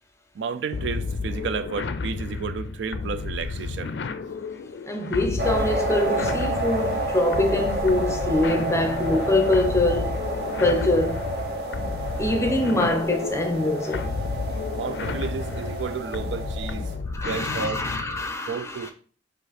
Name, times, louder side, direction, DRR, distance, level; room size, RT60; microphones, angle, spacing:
voice 1, 0.4-3.9 14.7-16.9 17.2-17.9 18.5-18.9, right 5 dB, 85° right, 0.4 m, -32 dB
sound 1, 0.7-18.3, left 4 dB, 70° left, 0.4 m, -32 dB
voice 2, 4.9-10.2 10.6-11.3 12.2-14.1 17.1-18.9, left 2 dB, 15° left, 0.6 m, -24 dB
sound 2, 5.4-17.0, right 1 dB, 60° right, 0.8 m, -30 dB
5.0 x 2.5 x 4.1 m
head